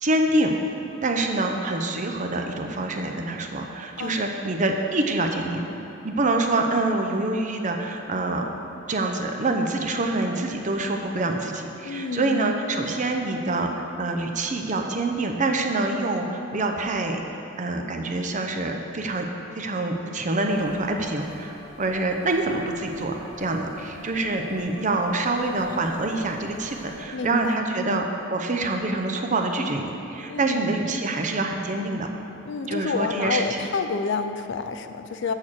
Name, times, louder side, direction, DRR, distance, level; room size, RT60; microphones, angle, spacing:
voice 1, 0.0-0.5 1.0-5.6 6.0-8.5 8.9-17.2 17.6-19.3 19.6-32.1 32.7-33.6, right 2 dB, 40° right, 3 dB, 0.7 m, -26 dB
voice 2, 4.0-4.3 11.8-12.5 27.1-28.0 30.3-30.7 32.4-35.3, left 5 dB, 65° left, 9 dB, 0.4 m, -29 dB
sound 1, 20.5-27.1, left 1 dB, 45° left, 2.0 m, -47 dB
6.5 x 6.3 x 7.4 m, 2.9 s
head